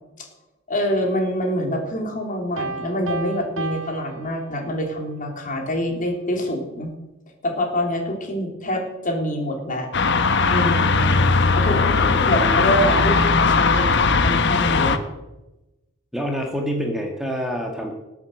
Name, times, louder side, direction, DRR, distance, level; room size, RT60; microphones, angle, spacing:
voice 1, 0.7-6.9 7.4-9.9 10.5-11.1 11.6-11.9 12.2-15.0, equal, 40° left, 2 dB, 3.7 m, -25 dB
Piano, 2.6-5.0, right 3 dB, 70° right, 1.2 m, -33 dB
sound 1, 9.9-15.0, left 4 dB, 60° left, 1.2 m, -18 dB
voice 2, 12.0-12.6 16.1-17.9, equal, ahead, 1 dB, 1.9 m, -27 dB
19.5 x 8.3 x 8.0 m, 1.0 s
head